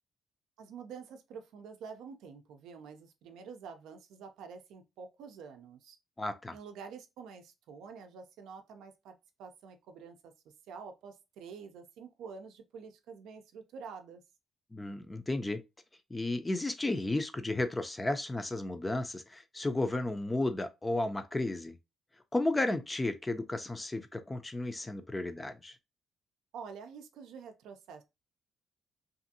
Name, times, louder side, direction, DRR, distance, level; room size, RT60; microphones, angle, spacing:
voice 1, 0.6-6.0 6.5-10.3 10.7-14.2 26.5-28.0, right 6 dB, 85° right, 0.4 m, -48 dB
voice 2, 6.2-6.6 14.7-15.6 16.1-21.8 22.3-25.7, left 2 dB, 15° left, 0.4 m, -33 dB
2.6 x 2.5 x 2.6 m
cardioid pair, 90°, 0 cm